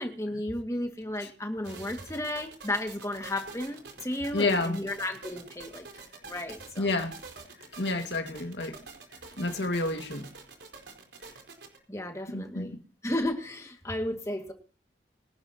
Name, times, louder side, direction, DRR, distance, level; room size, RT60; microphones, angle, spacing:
voice 1, 0.0-5.8 6.2-6.9 11.9-12.7 13.0-14.5, left 1 dB, 15° left, 2.0 m, -33 dB
sound 1, 1.6-11.8, right 4 dB, 85° right, 4.3 m, -46 dB
voice 2, 4.3-4.8 6.8-7.2 7.8-8.8 9.4-10.3 12.3-12.8, left 2 dB, 75° left, 2.0 m, -29 dB
23.5 x 11.5 x 2.9 m
head